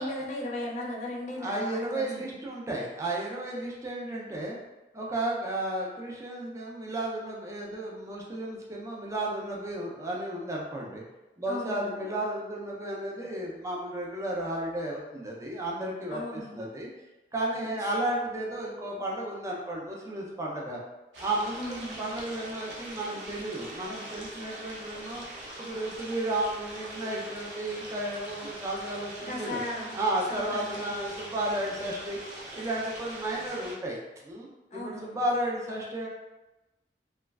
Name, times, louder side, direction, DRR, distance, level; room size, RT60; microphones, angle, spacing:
voice 1, 0.0-2.4 11.5-12.2 16.1-16.6 17.6-17.8 21.6-22.0 29.2-29.9 30.3-30.9 34.7-35.2, left 1 dB, 40° left, -1 dB, 0.5 m, -37 dB
voice 2, 1.4-4.6 4.9-11.0 11.4-16.9 17.3-20.8 21.2-25.2 25.6-29.6 29.9-32.2 32.5-34.0 34.2-36.1, right 1 dB, 15° right, -3 dB, 0.4 m, -33 dB
sound 1, 21.1-33.7, right 1 dB, 90° right, 0.7 m, -43 dB
3.1 x 2.3 x 2.2 m, 1.0 s
head